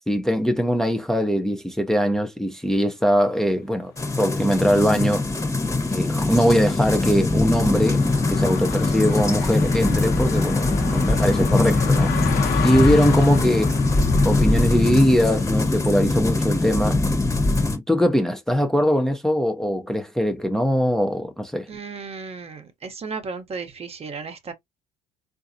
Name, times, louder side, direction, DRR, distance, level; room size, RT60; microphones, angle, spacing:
voice 1, 0.1-3.9 4.2-5.2 5.9-12.1 12.6-13.8 14.2-17.0 17.9-21.7, equal, 5° left, 0.6 m, -21 dB
sound 1, 3.3-3.4 3.8-16.7, left 8 dB, 75° left, 0.9 m, -34 dB
sound 2, 4.0-17.8, left 2 dB, 20° left, 1.1 m, -22 dB
voice 2, 21.7-24.5, right 5 dB, 40° right, 0.9 m, -34 dB
3.8 x 2.6 x 2.6 m
cardioid pair, 100°, 16 cm